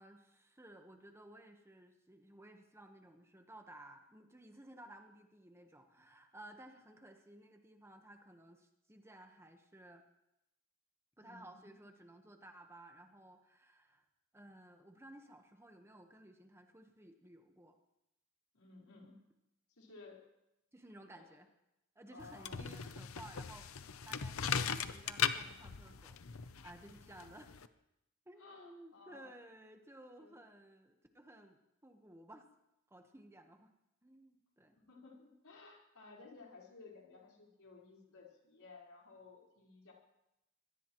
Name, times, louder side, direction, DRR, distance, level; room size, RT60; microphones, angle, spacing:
voice 1, 0.0-10.0 11.2-14.0 14.3-17.8 20.7-21.5 21.9-27.5 28.3-32.4 32.9-33.7 34.0-34.8, right 1 dB, 10° right, 4 dB, 1.2 m, -57 dB
voice 2, 11.2-11.7 18.5-19.2 19.7-20.3 21.1-21.3 22.1-22.7 28.4-29.4 30.2-30.4 34.8-39.9, left 3 dB, 90° left, -2 dB, 4.5 m, -57 dB
sound 1, 22.2-27.7, left 7 dB, 75° left, 0.7 m, -39 dB
23.5 x 18.0 x 3.1 m, 0.86 s
head